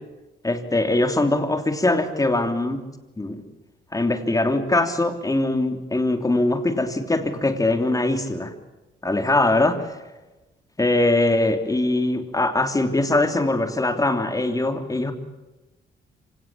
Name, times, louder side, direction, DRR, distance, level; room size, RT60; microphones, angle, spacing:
voice 1, 0.4-2.8 3.2-3.4 3.9-8.5 9.0-9.9 10.8-15.1, left 2 dB, 15° left, 7 dB, 3.2 m, -22 dB
26.0 x 18.0 x 8.6 m, 1.1 s
cardioid pair, 90°, 20 cm